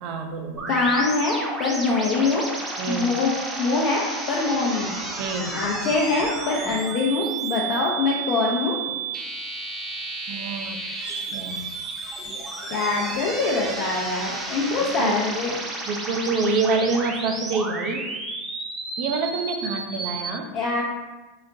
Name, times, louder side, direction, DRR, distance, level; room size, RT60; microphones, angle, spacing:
voice 1, 0.0-0.7 2.8-3.1 5.2-5.6 10.3-11.7 15.0-15.4 15.8-18.1 19.0-20.5, right 3 dB, 55° right, 5 dB, 0.4 m, -27 dB
sound 1, 0.6-20.3, right 3 dB, 25° right, 0.7 m, -32 dB
voice 2, 0.7-2.4 2.9-3.3 3.6-4.9 5.5-8.8 12.7-15.6 20.5-20.8, left 3 dB, 55° left, -4 dB, 0.5 m, -24 dB
3.9 x 2.1 x 2.6 m, 1.2 s
hypercardioid pair, 90°, 0 cm